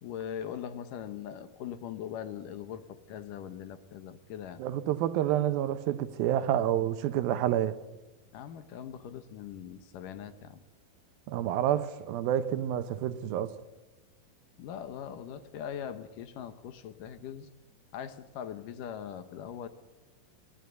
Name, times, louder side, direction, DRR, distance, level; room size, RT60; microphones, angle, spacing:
voice 1, 0.0-4.6 8.3-10.6 14.6-17.5 17.9-19.7, left 9 dB, 70° left, 2.6 m, -41 dB
voice 2, 4.6-7.8 11.3-13.6, right 11 dB, 85° right, 2.8 m, -28 dB
21.0 x 15.5 x 9.4 m
omnidirectional pair, 4.1 m